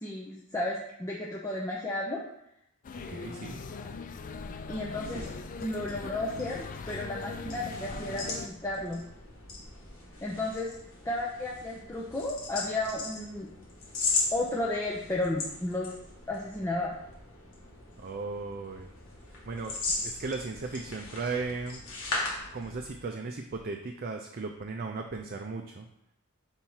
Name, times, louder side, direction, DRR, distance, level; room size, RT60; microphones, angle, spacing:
voice 1, 0.0-2.2 4.7-5.2 5.6-9.0 10.2-10.7 11.0-13.5 14.3-15.9 16.3-16.9, left 2 dB, 15° left, -4 dB, 0.7 m, -33 dB
sound 1, 2.8-8.5, left 4 dB, 40° left, 0.3 m, -41 dB
voice 2, 3.1-3.6 18.0-18.9 19.5-19.7 20.0-21.8 22.5-25.9, right 3 dB, 45° right, 3 dB, 0.5 m, -36 dB
sound 2, 4.2-23.1, left 3 dB, 65° left, 1.9 m, -38 dB
4.5 x 4.4 x 5.6 m, 0.79 s
head